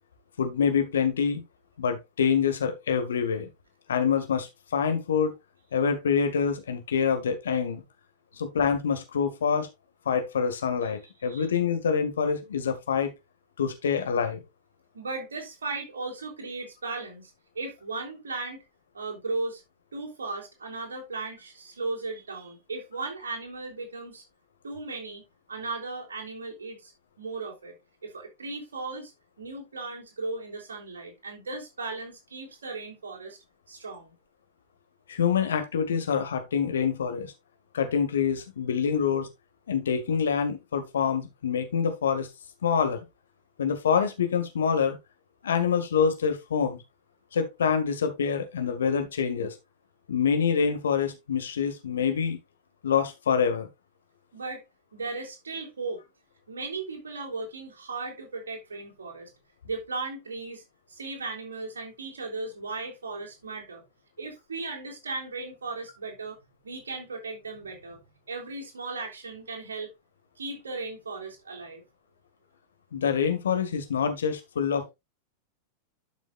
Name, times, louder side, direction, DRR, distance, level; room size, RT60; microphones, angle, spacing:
voice 1, 0.4-1.4 1.8-3.5 3.9-5.3 5.7-7.8 8.4-9.7 10.1-13.1 13.6-14.4 35.1-37.3 37.7-39.3 39.7-42.3 42.6-43.0 43.6-45.0 45.4-46.8 47.3-49.5 50.1-52.4 52.8-53.7 72.9-74.9, left 7 dB, 65° left, 2.0 m, -26 dB
voice 2, 14.9-18.6 18.9-19.6 19.9-24.2 24.6-26.9 27.2-27.8 28.0-29.1 29.4-33.4 33.7-34.1 54.3-54.6 54.9-56.0 56.5-59.3 59.6-63.8 64.2-66.4 66.6-68.0 68.3-69.9 70.4-71.8, right 3 dB, 70° right, 3.6 m, -36 dB
12.0 x 6.2 x 2.5 m
figure-of-eight pair, 90°, 0 cm